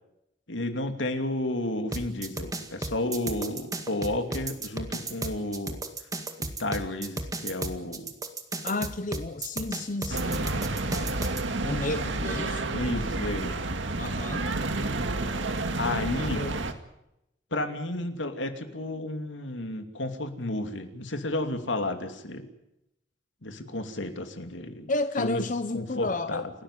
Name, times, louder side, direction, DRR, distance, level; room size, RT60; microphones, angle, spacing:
voice 1, 0.5-5.8 6.4-8.1 12.7-13.6 15.8-16.4 17.5-22.5 23.4-24.9 25.2-25.4 25.7-26.5, left 1 dB, 90° left, 7 dB, 2.8 m, -32 dB
sound 1, 1.9-11.4, right 2 dB, 20° right, 2.0 m, -34 dB
voice 2, 8.6-10.6 11.6-12.8 14.0-14.4 16.3-16.6 24.9-26.4, left 2 dB, 45° left, 11 dB, 0.9 m, -31 dB
sound 2, 10.1-16.7, right 2 dB, 90° right, 2.1 m, -30 dB
29.0 x 13.0 x 9.9 m, 0.87 s
head